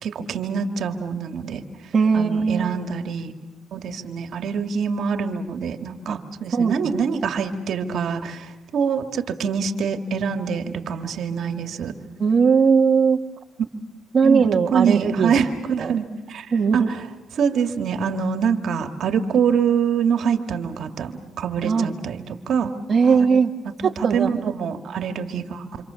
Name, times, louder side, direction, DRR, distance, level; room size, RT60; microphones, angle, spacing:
voice 1, 0.0-1.6 2.1-3.3 3.7-11.9 14.2-16.5 16.7-17.0 17.3-22.7 23.1-23.2 24.0-25.6, right 6 dB, 70° right, 6 dB, 2.2 m, -25 dB
voice 2, 1.9-2.8 6.1-6.2 6.5-6.7 12.2-13.2 14.1-15.4 15.8-15.9 16.5-16.9 21.6-21.9 22.9-23.5 23.8-24.3, right 5 dB, 45° right, 1 dB, 1.8 m, -19 dB
28.0 x 27.0 x 7.1 m, 1.0 s
cardioid pair, 90°, 0 cm